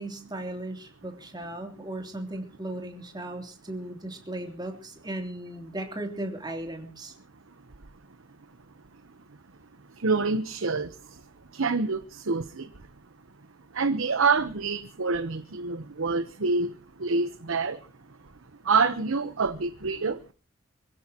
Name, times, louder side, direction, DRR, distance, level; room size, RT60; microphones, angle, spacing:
voice 1, 0.0-7.1, right 1 dB, 20° right, 3.1 m, -36 dB
voice 2, 9.9-11.2 11.5-12.9 13.7-17.9 18.6-20.2, right 4 dB, 75° right, 0.9 m, -27 dB
26.0 x 16.0 x 2.9 m
head